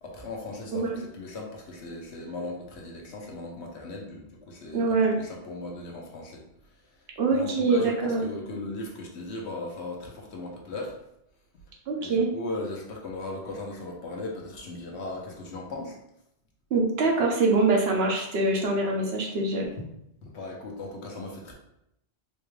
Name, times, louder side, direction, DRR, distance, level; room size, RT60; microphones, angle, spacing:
voice 1, 0.0-6.4 6.7-11.0 12.0-16.0 20.2-21.5, left 2 dB, 75° left, 0 dB, 1.1 m, -38 dB
voice 2, 4.7-5.2 7.2-8.2 11.9-12.3 16.7-19.7, right 3 dB, 65° right, 0 dB, 1.0 m, -24 dB
4.2 x 2.3 x 3.2 m, 0.78 s
omnidirectional pair, 1.1 m